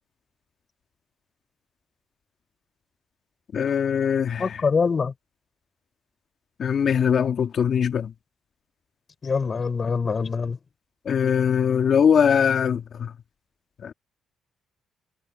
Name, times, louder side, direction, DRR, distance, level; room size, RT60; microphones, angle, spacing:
voice 1, 3.5-4.6 6.6-8.1 11.1-13.1 13.8-13.9, left 7 dB, 55° left, 1.8 m, -21 dB
voice 2, 4.4-5.1 9.2-10.6, left 5 dB, 40° left, 4.6 m, -24 dB
cardioid pair, 90°, 0 cm